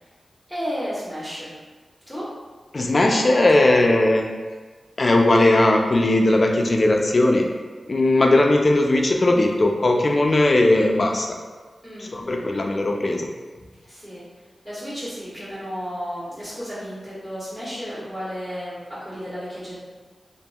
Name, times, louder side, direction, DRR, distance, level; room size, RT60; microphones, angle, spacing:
voice 1, 0.5-1.5 2.1-2.3 3.2-3.9 11.8-12.5 13.8-14.2 14.6-19.8, equal, 5° right, -12 dB, 1.4 m, -33 dB
voice 2, 2.7-4.3 5.0-7.5 7.9-11.3 12.0-13.3, left 2 dB, 50° left, 2 dB, 0.4 m, -18 dB
2.7 x 2.5 x 2.3 m, 1.4 s
cardioid pair, 50°, 0 cm